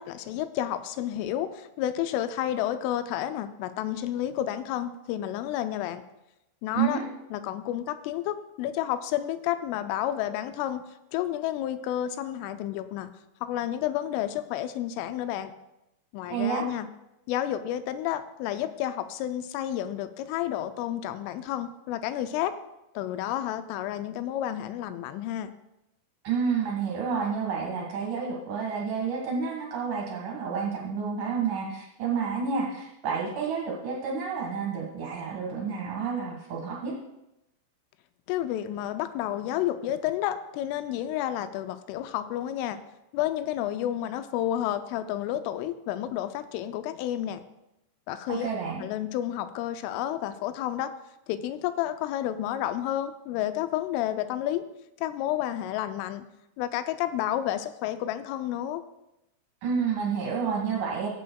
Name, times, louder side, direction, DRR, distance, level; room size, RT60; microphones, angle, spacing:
voice 1, 0.0-6.0 6.6-7.0 7.3-10.8 11.1-13.1 13.4-15.5 16.1-16.9 17.3-22.5 23.0-25.5 38.3-42.8 43.1-47.4 48.1-48.5 48.8-50.9 51.3-54.6 55.0-56.2 56.6-58.8, left 12 dB, 85° left, 11 dB, 3.1 m, -30 dB
voice 2, 6.7-7.1 16.3-16.7 26.2-37.0 48.3-48.8 59.6-61.1, right 6 dB, 60° right, -1 dB, 2.5 m, -30 dB
17.5 x 7.8 x 2.3 m, 0.90 s
omnidirectional pair, 5.6 m